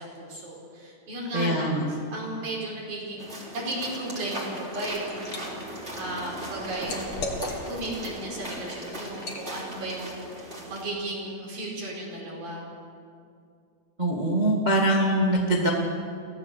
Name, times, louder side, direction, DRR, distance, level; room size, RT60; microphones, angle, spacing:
voice 1, 0.0-7.3 7.7-12.7, right 1 dB, 55° right, -3 dB, 6.4 m, -35 dB
voice 2, 1.3-1.8 14.0-15.7, right 1 dB, 80° right, -1 dB, 0.4 m, -23 dB
sound 1, 3.2-10.8, right 1 dB, 15° right, 3.2 m, -38 dB
Liquid, 4.6-5.4 5.8-7.9 8.4-8.6 9.1-9.5, left 2 dB, 40° left, 2.4 m, -36 dB
24.5 x 16.5 x 6.7 m, 2.4 s
omnidirectional pair, 5.0 m